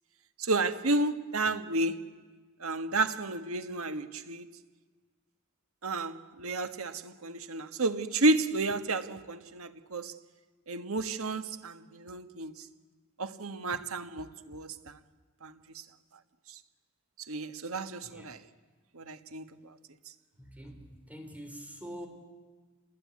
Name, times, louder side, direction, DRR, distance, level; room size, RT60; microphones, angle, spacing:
voice 1, 0.4-2.1 2.6-4.5 5.8-10.1 10.7-12.7 13.2-15.0 15.4-15.8 17.3-18.4 18.9-19.6, right 2 dB, 85° right, 1.4 m, -32 dB
voice 2, 20.4-22.1, equal, 5° right, 3.3 m, -45 dB
28.0 x 20.5 x 9.6 m
head